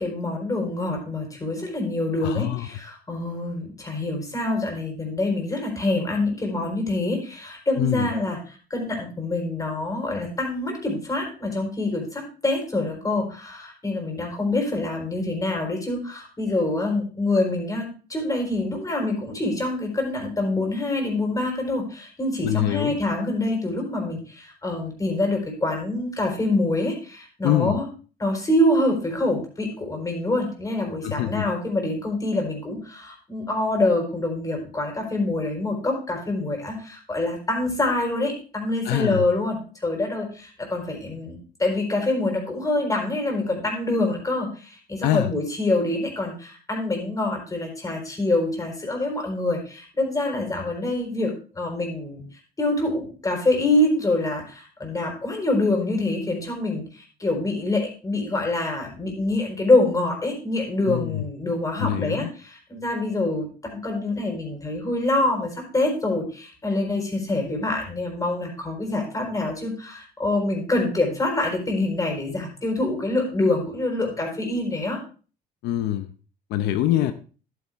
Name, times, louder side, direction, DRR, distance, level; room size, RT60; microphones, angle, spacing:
voice 1, 0.0-27.8 28.2-52.2 52.6-75.0, left 2 dB, 20° left, 4.3 m, -25 dB
voice 2, 2.2-2.7 7.8-8.1 22.4-23.0 27.4-27.8 31.0-31.5 38.8-39.3 45.0-45.3 60.8-61.3 61.8-62.3 75.6-76.1 76.5-77.1, left 13 dB, 85° left, 0.7 m, -24 dB
11.0 x 9.4 x 3.5 m
cardioid pair, 110°, 17 cm